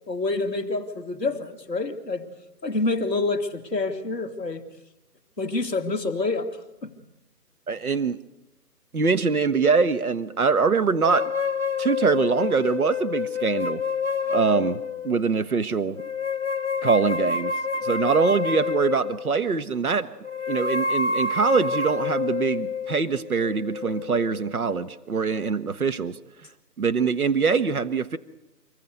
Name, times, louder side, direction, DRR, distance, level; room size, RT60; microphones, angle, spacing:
voice 1, 0.1-2.3 2.6-4.6 5.4-6.9, left 3 dB, 5° left, -9 dB, 1.4 m, -27 dB
voice 2, 7.7-8.2 8.9-11.3 11.8-13.8 14.3-16.0 16.8-17.5 17.8-20.1 20.5-26.2 26.8-28.2, right 5 dB, 65° right, 11 dB, 1.4 m, -23 dB
sound 1, 11.0-15.2 16.0-19.4 20.2-24.6, left 4 dB, 50° left, 0.9 m, -28 dB
25.0 x 21.0 x 7.9 m, 0.90 s
figure-of-eight pair, 170°, 48 cm